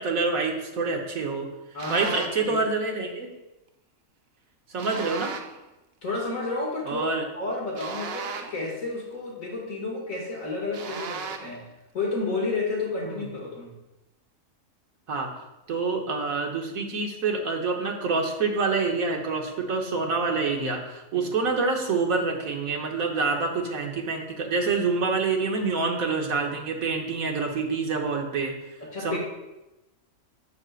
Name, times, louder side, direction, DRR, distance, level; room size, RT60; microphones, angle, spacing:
voice 1, 0.0-1.5 1.9-3.3 4.7-5.3 6.9-7.2 13.1-13.3 15.1-15.3 15.7-28.5 29.0-29.2, right 4 dB, 80° right, 1 dB, 1.6 m, -27 dB
voice 2, 1.7-2.1 2.4-2.6 6.0-7.1 7.3-11.6 11.9-13.7 21.1-21.3 28.9-29.2, left 3 dB, 70° left, -3 dB, 2.6 m, -31 dB
sound 1, 1.8-2.5 4.8-5.6 7.8-8.7 10.7-11.6, right 6 dB, 55° right, 0.8 m, -36 dB
9.7 x 7.8 x 2.5 m, 0.98 s
omnidirectional pair, 1.4 m